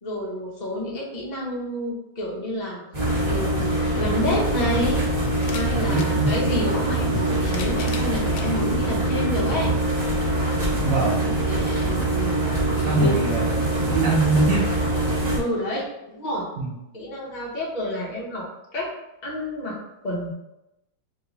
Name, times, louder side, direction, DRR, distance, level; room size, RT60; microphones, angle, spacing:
voice 1, 0.0-2.8 3.2-5.0 5.5-9.7 11.3-12.4 13.0-13.3 15.3-16.5 16.9-18.4 18.7-18.9 19.2-19.8 20.0-20.3, left 1 dB, 50° left, -4 dB, 0.5 m, -29 dB
sound 1, 2.9-15.4, right 2 dB, 30° right, 0.8 m, -23 dB
sound 2, 5.3-6.1 7.1-8.5 9.2-9.3 10.6-10.7, left 6 dB, 75° left, 1.3 m, -38 dB
voice 2, 5.7-6.3 10.8-11.2 12.6-13.5 13.9-14.7 16.6-16.7, right 3 dB, 75° right, -5 dB, 0.7 m, -23 dB
3.4 x 3.0 x 4.0 m, 0.91 s
omnidirectional pair, 2.3 m